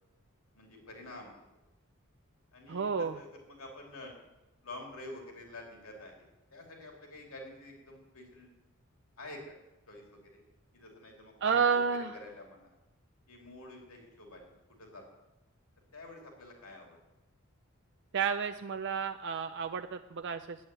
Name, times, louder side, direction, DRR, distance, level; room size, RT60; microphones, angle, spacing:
voice 1, 0.5-1.3 2.5-4.2 4.6-8.5 9.2-9.5 9.9-10.3 10.7-11.9 12.1-12.7 13.3-14.5 14.8-15.0 15.9-17.0, left 2 dB, 85° left, 1 dB, 2.7 m, -48 dB
voice 2, 2.7-3.2 11.4-12.2 18.1-20.6, right 6 dB, 55° right, 7 dB, 0.5 m, -31 dB
10.5 x 8.6 x 8.8 m, 1.0 s
head